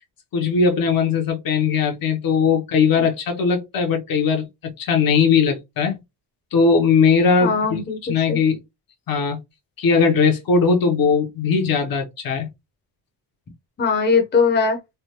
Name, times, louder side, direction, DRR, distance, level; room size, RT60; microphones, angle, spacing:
voice 1, 0.3-4.5 4.8-6.0 6.5-7.8 8.1-8.6 9.1-9.4 9.8-12.5, left 5 dB, 60° left, 0.8 m, -19 dB
voice 2, 7.4-8.4 13.8-14.8, left 5 dB, 25° left, 0.7 m, -20 dB
3.3 x 2.2 x 2.8 m
cardioid pair, 135°, 40 cm